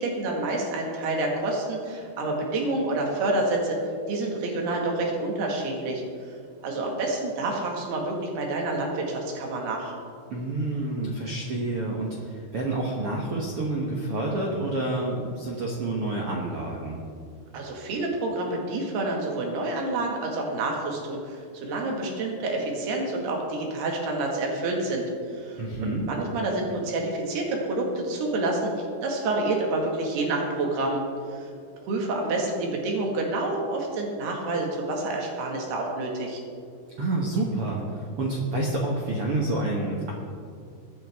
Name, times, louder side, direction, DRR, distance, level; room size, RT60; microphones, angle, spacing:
voice 1, 0.0-6.0 6.6-9.9 17.5-31.0 31.3-31.5 31.9-36.4, right 2 dB, 90° right, 0 dB, 4.0 m, -28 dB
voice 2, 10.3-17.0 25.6-26.1 37.0-40.1, right 2 dB, 65° right, -2 dB, 1.4 m, -28 dB
23.5 x 9.4 x 3.6 m, 2.3 s
omnidirectional pair, 4.5 m